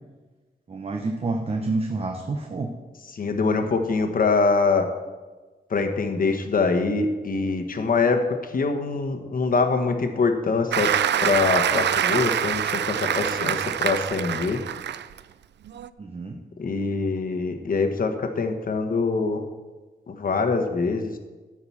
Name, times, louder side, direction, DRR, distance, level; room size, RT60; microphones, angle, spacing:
voice 1, 0.7-2.8 16.0-16.4, right 3 dB, 35° right, 3 dB, 0.8 m, -28 dB
voice 2, 3.1-4.9 5.7-10.9 11.2-14.6 16.6-19.4 20.1-21.2, left 4 dB, 55° left, 5 dB, 1.1 m, -24 dB
Applause, 10.7-15.2 15.7-15.9, right 9 dB, 90° right, 0.4 m, -25 dB
13.5 x 4.9 x 7.1 m, 1.3 s
wide cardioid pair, 150°, 17 cm